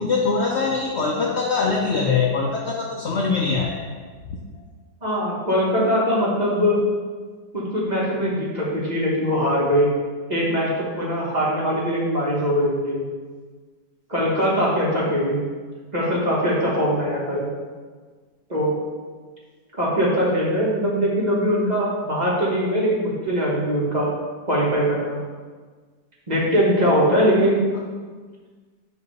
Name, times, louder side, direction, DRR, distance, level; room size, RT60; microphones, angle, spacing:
voice 1, 0.0-3.8, left 4 dB, 75° left, -1 dB, 0.6 m, -22 dB
voice 2, 5.0-6.8 7.5-9.9 10.3-13.0 14.1-15.4 15.9-17.4 18.5-18.7 19.8-24.1 24.5-25.2 26.3-27.6, equal, 25° right, -5 dB, 1.3 m, -21 dB
8.2 x 2.9 x 5.3 m, 1.5 s
omnidirectional pair, 1.9 m